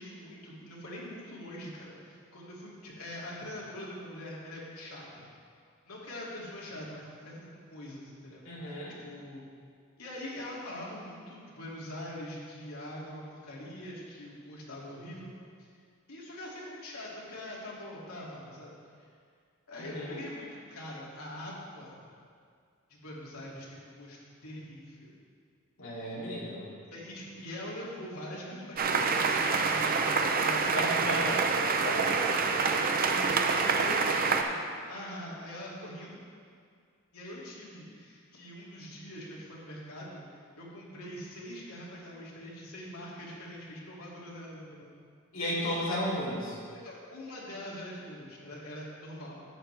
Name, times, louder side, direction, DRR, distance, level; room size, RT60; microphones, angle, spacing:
voice 1, 0.0-5.3 5.9-9.5 10.0-15.3 15.6-15.7 16.1-19.1 19.7-22.0 22.9-25.2 26.9-30.8 33.1-36.2 37.1-44.9 46.7-49.4, left 1 dB, 85° left, -5 dB, 2.4 m, -43 dB
voice 2, 8.4-9.0 19.8-20.2 25.8-26.7 30.7-31.4 31.8-32.3 33.6-33.7 45.3-46.6, equal, 65° left, -7 dB, 2.7 m, -34 dB
sound 1, 28.8-34.4, right 4 dB, 45° right, 0.6 m, -27 dB
11.0 x 9.0 x 3.3 m, 2.2 s
head